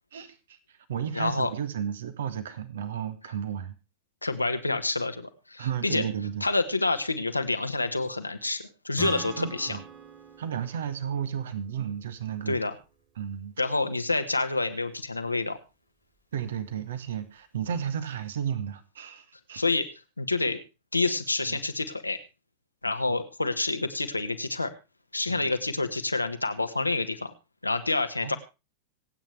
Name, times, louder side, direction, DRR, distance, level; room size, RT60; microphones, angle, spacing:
voice 1, 0.1-3.8 5.6-6.4 9.4-9.8 10.4-12.6 13.2-13.6 16.3-19.6 21.5-21.6 23.1-23.2 25.3-25.5 28.2-28.4, right 8 dB, 60° right, 11 dB, 1.7 m, -33 dB
voice 2, 1.1-1.5 4.2-6.0 6.4-9.8 12.5-12.7 13.6-15.6 19.5-19.9 20.2-20.6 20.9-22.2 22.8-24.7 25.1-27.3 27.6-28.4, left 3 dB, 85° left, 8 dB, 1.5 m, -28 dB
Acoustic guitar / Strum, 9.0-12.5, right 7 dB, 30° right, 3.1 m, -42 dB
26.0 x 8.9 x 3.4 m, 0.29 s
figure-of-eight pair, 90°, 0 cm